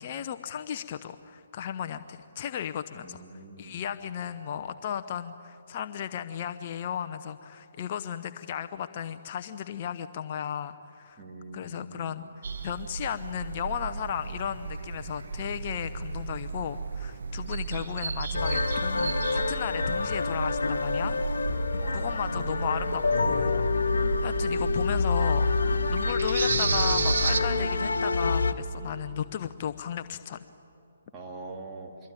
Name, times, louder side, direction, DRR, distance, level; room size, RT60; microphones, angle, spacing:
voice 1, 0.0-3.2 3.6-11.2 11.5-21.2 21.4-21.6 21.9-23.7 24.2-25.5 25.9-30.4, left 9 dB, 40° left, 8 dB, 0.8 m, -35 dB
voice 2, 2.9-3.8 11.2-12.1 21.8-22.3 31.1-32.0, right 2 dB, 15° right, -1 dB, 3.3 m, -43 dB
sound 1, 12.4-27.4, right 5 dB, 60° right, 1.5 m, -33 dB
sound 2, 18.3-28.5, left 4 dB, 70° left, 1.4 m, -27 dB
25.5 x 23.0 x 9.1 m, 2.7 s
figure-of-eight pair, 140°, 0 cm